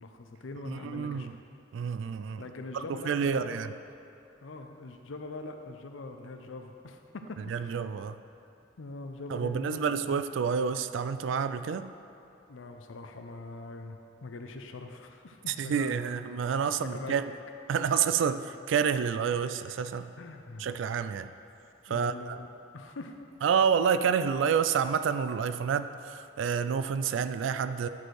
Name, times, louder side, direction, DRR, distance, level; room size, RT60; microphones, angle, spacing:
voice 1, 0.0-1.3 2.4-3.8 4.4-7.8 8.8-10.2 12.5-16.0 16.6-17.3 20.2-20.7 21.9-22.5 22.7-23.2, left 2 dB, 85° left, 5 dB, 0.6 m, -43 dB
voice 2, 0.7-1.3 1.7-2.4 2.7-3.7 7.5-8.2 9.3-11.9 15.5-17.3 17.7-20.1 20.6-21.3 21.9-22.4 23.4-27.9, right 7 dB, 75° right, 12 dB, 0.3 m, -29 dB
10.5 x 4.4 x 4.7 m, 2.7 s
head